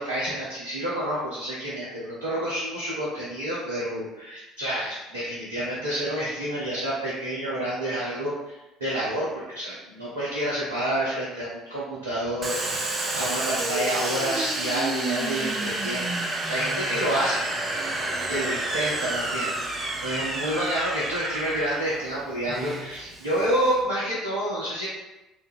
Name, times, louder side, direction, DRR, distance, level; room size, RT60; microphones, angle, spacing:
voice 1, 0.0-16.1 16.5-17.5 18.3-24.9, right 1 dB, 80° right, -8 dB, 0.6 m, -29 dB
Domestic sounds home sounds, 12.4-23.8, right 2 dB, 30° right, 0.5 m, -30 dB
2.7 x 2.2 x 3.5 m, 1.0 s
figure-of-eight pair, 60°, 0 cm